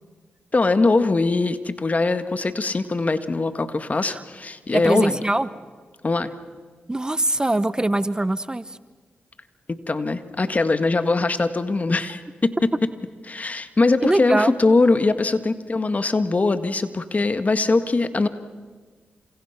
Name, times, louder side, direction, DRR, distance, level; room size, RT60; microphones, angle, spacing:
voice 1, 0.5-5.2 6.0-6.3 9.7-12.5 13.3-18.3, left 3 dB, 40° left, 10 dB, 1.8 m, -21 dB
voice 2, 4.7-5.5 6.9-8.8 14.0-14.6, right 2 dB, 20° right, 15 dB, 0.8 m, -22 dB
29.5 x 27.5 x 6.0 m, 1.4 s
supercardioid pair, 45°, 4 cm